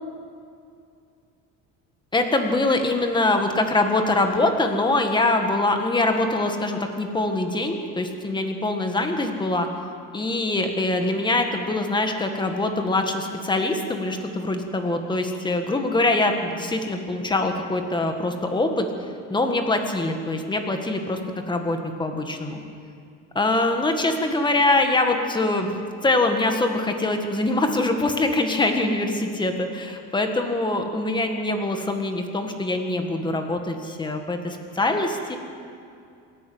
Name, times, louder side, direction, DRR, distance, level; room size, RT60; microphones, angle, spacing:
voice 1, 2.1-9.7 10.1-18.9 19.3-21.2 21.5-22.6 23.3-25.7 26.0-35.4, left 2 dB, 15° left, 5 dB, 1.7 m, -23 dB
27.0 x 11.0 x 8.6 m, 2.4 s
cardioid pair, 165°, 33 cm